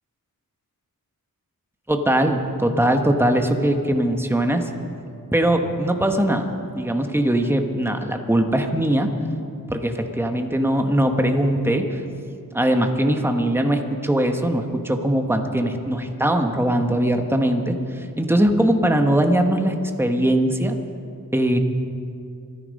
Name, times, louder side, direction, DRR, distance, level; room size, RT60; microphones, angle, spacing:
voice 1, 1.9-4.7 5.3-6.5 6.7-9.1 9.7-12.0 12.5-20.8 21.3-21.6, right 1 dB, 5° right, 5 dB, 1.2 m, -21 dB
25.5 x 10.0 x 5.4 m, 2.5 s
wide cardioid pair, 70°, 36 cm